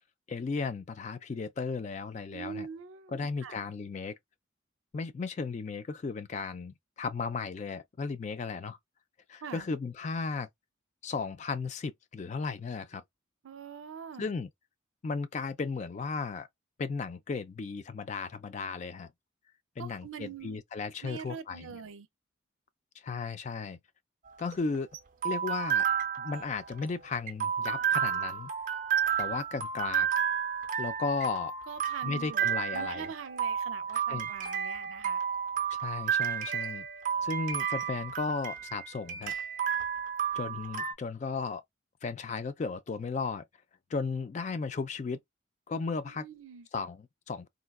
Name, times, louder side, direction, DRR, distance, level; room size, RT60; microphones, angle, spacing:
voice 1, 0.3-2.7 3.1-4.2 4.9-8.8 9.3-10.5 11.0-13.0 14.2-14.5 15.0-16.5 16.8-19.1 19.8-21.7 23.0-23.8 24.4-24.9 25.2-25.9 26.2-28.5 29.2-30.1 30.8-31.5 32.0-33.1 34.1-34.3 35.7-36.8 37.2-39.3 40.3-41.6 42.0-43.4 43.9-45.2 45.7-46.2 46.7-47.5, left 4 dB, 35° left, 0.3 m, -35 dB
voice 2, 2.3-3.6 9.4-9.7 13.4-14.3 19.8-20.6 21.0-22.1 31.7-35.2 46.0-46.7, right 6 dB, 90° right, 0.5 m, -44 dB
sound 1, 24.3-40.9, right 8 dB, 40° right, 0.5 m, -32 dB
3.7 x 2.3 x 2.3 m
head